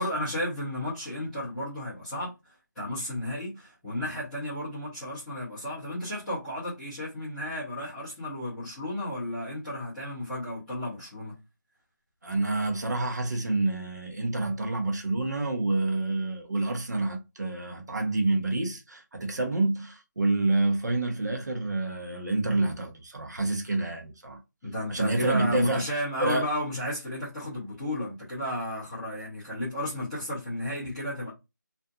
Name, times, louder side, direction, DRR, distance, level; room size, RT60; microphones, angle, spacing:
voice 1, 0.0-2.3 2.7-11.3 24.6-31.3, left 1 dB, ahead, 0.5 m, -33 dB
voice 2, 12.2-24.4 24.9-25.9 26.2-26.5, right 2 dB, 60° right, 1.0 m, -28 dB
2.6 x 2.4 x 2.3 m
figure-of-eight pair, 170°, 11 cm